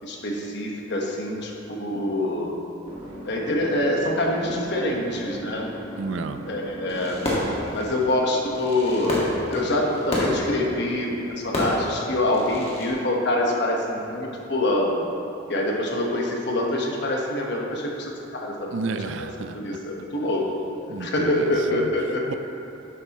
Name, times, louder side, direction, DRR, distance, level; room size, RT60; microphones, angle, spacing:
voice 1, 0.0-2.5 3.2-5.7 6.5-7.2 7.7-15.0 15.5-18.8 19.2-19.3 19.5-20.4 21.0-22.3, left 1 dB, 60° left, -1 dB, 1.2 m, -25 dB
sound 1, 2.3-7.8, equal, 30° right, 1.7 m, -39 dB
voice 2, 6.0-6.4 18.7-19.8 20.9-21.9 22.3-22.4, right 4 dB, 70° right, 9 dB, 0.4 m, -31 dB
Fireworks, 6.9-12.9, left 1 dB, 30° left, 1.7 m, -29 dB
11.0 x 8.2 x 3.0 m, 2.9 s
head